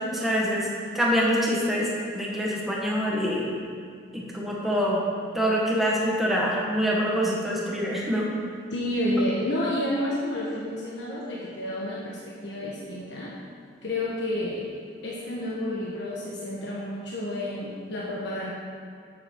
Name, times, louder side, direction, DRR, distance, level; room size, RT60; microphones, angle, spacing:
voice 1, 0.2-0.7 0.9-1.8 2.1-3.5 4.1-5.0 5.3-8.3, equal, ahead, -5 dB, 1.7 m, -25 dB
voice 2, 8.7-13.3 13.8-14.7 15.0-18.5, left 1 dB, 65° left, -5 dB, 1.4 m, -30 dB
11.5 x 7.8 x 4.7 m, 2.2 s
head